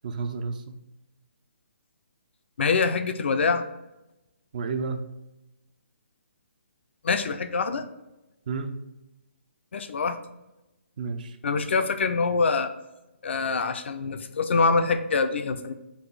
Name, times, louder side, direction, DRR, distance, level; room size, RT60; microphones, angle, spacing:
voice 1, 0.0-0.8 4.5-5.1 8.5-8.8 11.0-11.4, right 4 dB, 40° right, 9 dB, 0.4 m, -31 dB
voice 2, 2.6-3.7 7.0-7.8 9.7-10.2 11.4-12.7 13.2-15.7, left 4 dB, 65° left, 9 dB, 0.4 m, -25 dB
4.1 x 2.5 x 4.7 m, 0.94 s
hypercardioid pair, 165°, 7 cm